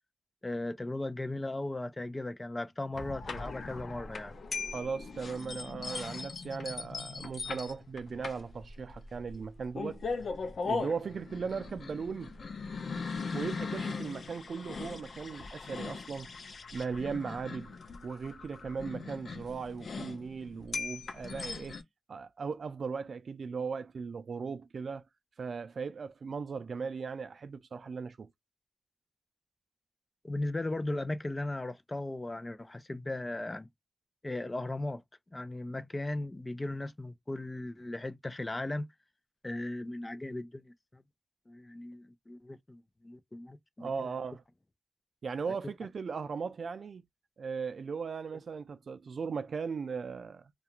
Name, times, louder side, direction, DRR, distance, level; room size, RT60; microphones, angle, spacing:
voice 1, 0.4-4.3 30.2-33.7 34.2-35.0 35.3-38.9 39.4-41.0 41.5-44.1, left 2 dB, 25° left, 0.4 m, -37 dB
sound 1, 2.9-21.8, left 4 dB, 80° left, 0.5 m, -39 dB
voice 2, 4.7-10.0 10.6-12.3 13.3-16.3 16.7-17.8 18.0-21.8 22.1-25.0 25.4-28.3 43.8-44.4 45.2-47.0 47.4-50.5, right 5 dB, 80° right, 0.3 m, -38 dB
2.4 x 2.3 x 2.8 m
wide cardioid pair, 95°, 0 cm